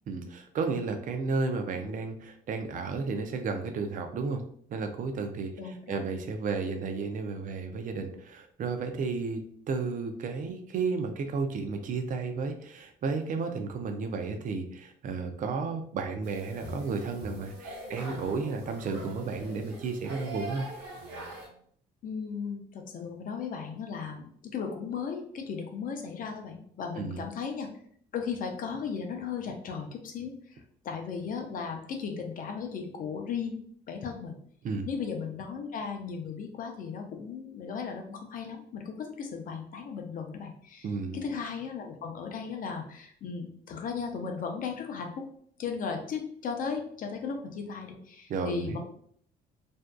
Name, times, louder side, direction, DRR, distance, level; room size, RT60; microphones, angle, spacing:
voice 1, 0.1-4.4 4.7-20.7 27.0-27.2 34.6-34.9 40.8-41.2 48.3-48.8, right 4 dB, 50° right, 6 dB, 0.5 m, -33 dB
voice 2, 5.6-6.0 22.0-27.7 28.1-33.6 33.9-34.4 34.8-45.3 45.6-48.8, left 6 dB, 50° left, 3 dB, 0.5 m, -36 dB
sound 1, 16.2-21.5, right 1 dB, 80° right, 0.9 m, -42 dB
2.6 x 2.3 x 2.2 m, 0.62 s
cardioid pair, 90°, 18 cm